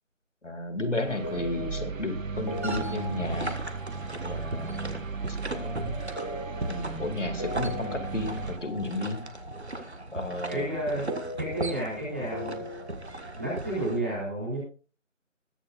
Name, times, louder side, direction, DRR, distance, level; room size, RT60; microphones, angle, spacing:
voice 1, 0.4-3.6 4.2-5.0 5.4-6.0 6.7-9.2 10.1-10.7, left 2 dB, 65° left, 7 dB, 2.6 m, -33 dB
sound 1, 0.8-13.7, equal, 25° left, 1.4 m, -41 dB
sound 2, 1.1-8.6, right 5 dB, 85° right, 0.9 m, -36 dB
sound 3, 2.4-14.0, right 2 dB, 55° right, 1.7 m, -38 dB
voice 2, 10.5-11.1 11.4-12.6 13.3-14.6, right 1 dB, 10° right, -6 dB, 3.2 m, -31 dB
21.0 x 7.2 x 2.5 m, 0.35 s
figure-of-eight pair, 180°, 38 cm